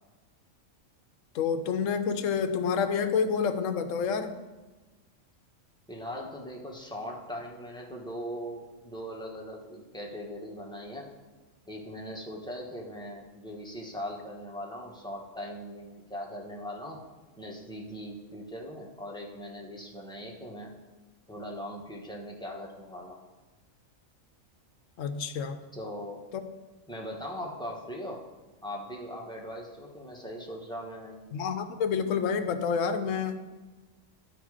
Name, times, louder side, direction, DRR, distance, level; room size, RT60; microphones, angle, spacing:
voice 1, 1.3-4.3 25.0-25.6 26.3-26.4 31.3-33.4, left 6 dB, 75° left, 9 dB, 1.0 m, -28 dB
voice 2, 5.9-11.1 11.6-17.0 17.4-20.7 21.3-23.2 25.7-26.2 26.9-28.2 28.6-31.2, equal, 5° left, -2 dB, 1.1 m, -40 dB
11.5 x 4.9 x 4.9 m, 1.2 s
omnidirectional pair, 1.3 m